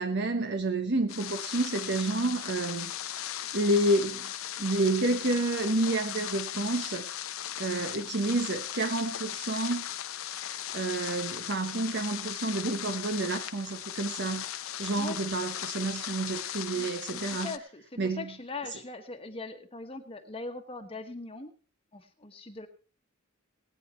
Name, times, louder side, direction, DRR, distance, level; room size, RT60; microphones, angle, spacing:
voice 1, 0.0-2.9 3.4-4.3 4.6-7.1 7.6-9.8 10.7-14.5 14.8-17.5 18.0-18.3 18.7-18.8, right 2 dB, 55° right, 1.0 m, -29 dB
sound 1, 1.1-17.6, left 11 dB, 80° left, 0.9 m, -37 dB
voice 2, 16.7-21.5 21.9-22.7, left 3 dB, 25° left, 1.3 m, -41 dB
19.5 x 8.9 x 4.3 m
head